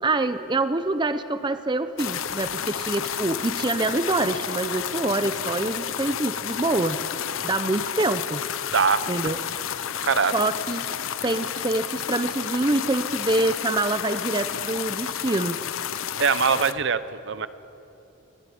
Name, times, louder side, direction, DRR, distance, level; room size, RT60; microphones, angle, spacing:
voice 1, 0.0-7.0 7.4-8.4 9.1-9.4 10.3-10.8 11.2-15.6, right 2 dB, 20° right, 10 dB, 0.5 m, -25 dB
sound 1, 2.0-16.7, left 9 dB, 70° left, 0.7 m, -31 dB
voice 2, 8.7-9.0 9.9-10.3 16.2-17.5, right 5 dB, 55° right, 13 dB, 0.7 m, -22 dB
23.0 x 15.0 x 9.3 m, 2.9 s
head